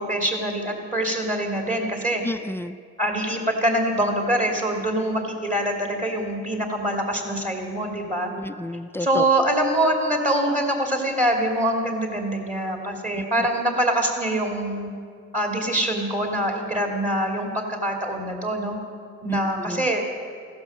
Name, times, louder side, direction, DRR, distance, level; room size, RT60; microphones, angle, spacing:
voice 1, 0.0-2.2 3.0-8.3 9.0-14.9 15.3-18.8 19.2-20.0, right 1 dB, 25° right, 2 dB, 2.9 m, -24 dB
voice 2, 2.2-2.8 8.4-9.2 13.2-13.3 19.3-19.9, left 1 dB, 10° left, 10 dB, 0.5 m, -30 dB
15.5 x 12.0 x 7.5 m, 2.2 s
cardioid pair, 90°, 30 cm